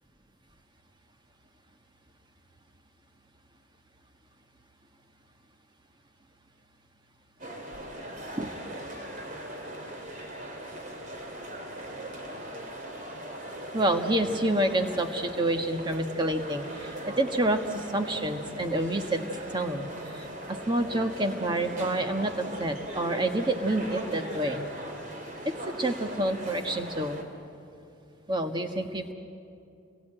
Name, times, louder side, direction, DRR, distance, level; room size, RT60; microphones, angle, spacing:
sound 1, 7.4-27.2, right 1 dB, 40° right, 2.8 m, -39 dB
voice 1, 13.7-19.2 19.5-19.9 20.1-24.7 25.8-27.2 28.3-29.1, right 1 dB, 20° right, 5 dB, 1.5 m, -28 dB
29.5 x 21.5 x 9.0 m, 2.6 s
head